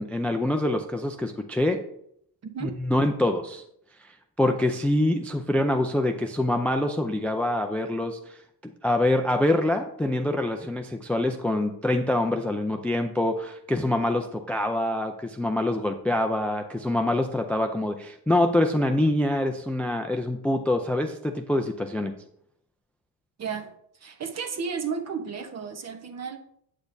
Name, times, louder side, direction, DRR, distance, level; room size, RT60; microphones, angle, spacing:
voice 1, 0.0-1.8 2.6-3.6 4.4-8.4 8.8-22.1, left 1 dB, 5° left, 6 dB, 0.3 m, -25 dB
voice 2, 2.4-2.7 23.4-26.4, right 6 dB, 40° right, 6 dB, 0.9 m, -33 dB
8.4 x 8.1 x 2.6 m, 0.70 s
cardioid pair, 155°, 39 cm